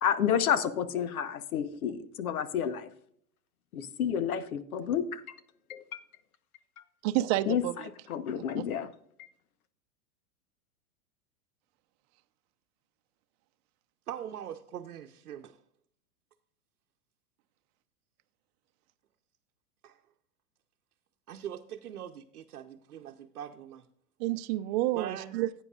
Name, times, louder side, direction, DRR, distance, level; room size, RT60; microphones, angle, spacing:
voice 1, 0.0-2.9 3.7-5.2 5.7-6.0 7.5-7.6 8.1-8.9, left 8 dB, 75° left, 12 dB, 1.2 m, -30 dB
voice 2, 7.0-7.9 8.6-8.7 24.2-25.5, right 15 dB, 45° right, 9 dB, 0.7 m, -29 dB
voice 3, 14.1-15.6 19.8-20.0 21.3-23.8 24.9-25.4, right 10 dB, 90° right, 2 dB, 0.9 m, -42 dB
15.5 x 9.1 x 2.4 m, 0.64 s
hypercardioid pair, 115°, 44 cm